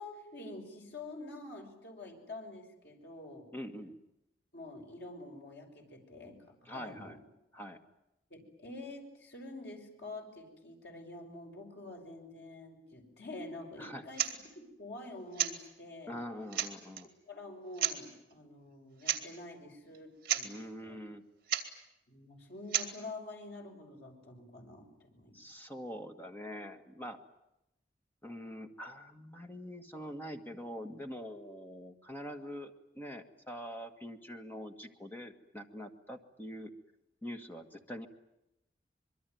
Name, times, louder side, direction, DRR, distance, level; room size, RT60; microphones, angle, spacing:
voice 1, 0.0-3.5 4.5-7.2 8.3-14.3 14.5-16.2 17.3-20.5 20.8-21.0 22.1-25.4, left 2 dB, 80° left, 2 dB, 6.3 m, -47 dB
voice 2, 3.5-4.0 6.7-7.2 7.5-7.8 13.8-14.1 16.1-17.1 20.4-21.2 25.3-27.2 28.2-36.7 37.2-38.1, equal, 10° left, 5 dB, 1.8 m, -44 dB
sound 1, 14.1-14.4 15.3-15.6 16.2-16.3 16.5-17.0 17.8-18.0 19.0-19.2 19.5-19.6 19.9-20.0 20.2-20.5 21.5-21.7 22.7-22.9, right 10 dB, 55° right, 2.7 m, -32 dB
25.5 x 22.5 x 9.5 m, 0.88 s
head